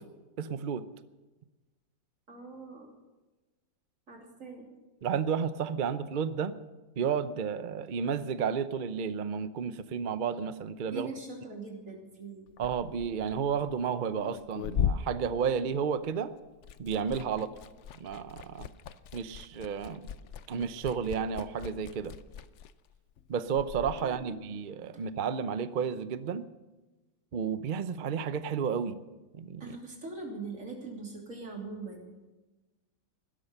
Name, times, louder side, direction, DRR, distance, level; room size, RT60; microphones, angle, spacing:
voice 1, 0.4-0.8 5.0-6.5 7.0-11.1 12.6-16.3 16.8-17.5 18.0-18.7 19.1-20.1 20.5-22.1 23.3-26.4 27.3-29.0 29.3-29.7, right 7 dB, 70° right, 12 dB, 0.4 m, -32 dB
voice 2, 2.3-2.9 4.1-4.8 10.9-12.5 17.3-17.5 24.2-24.6 24.9-25.0 29.6-32.2, right 3 dB, 45° right, 1 dB, 3.3 m, -42 dB
Liquid, 12.5-16.2 16.5-24.0, left 8 dB, 80° left, 0.6 m, -38 dB
17.0 x 12.5 x 6.7 m, 1.2 s
omnidirectional pair, 2.0 m